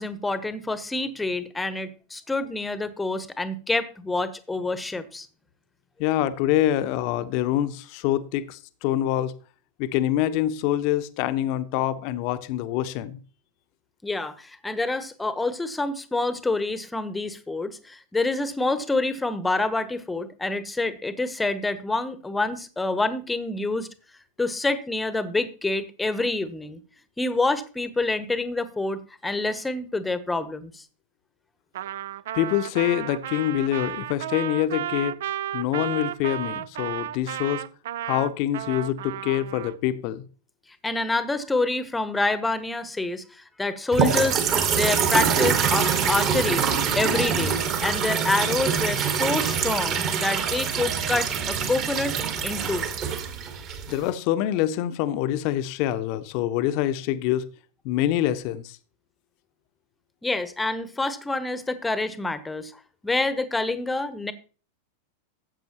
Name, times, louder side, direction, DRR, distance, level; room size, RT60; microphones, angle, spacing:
voice 1, 0.0-5.3 14.0-23.9 24.4-26.8 27.2-30.8 40.8-46.6 46.9-52.2 52.4-52.8 60.2-62.7 63.0-64.3, left 2 dB, 10° left, 0.9 m, -27 dB
voice 2, 6.0-9.3 9.8-13.2 32.3-35.2 35.5-37.6 38.0-40.2 53.9-57.5 57.8-58.8, left 12 dB, 45° left, 0.7 m, -25 dB
Trumpet, 31.7-39.8, right 11 dB, 55° right, 0.4 m, -33 dB
sound 1, 43.9-54.1, right 6 dB, 35° right, 1.6 m, -24 dB
14.0 x 7.7 x 2.9 m
figure-of-eight pair, 90°, 0 cm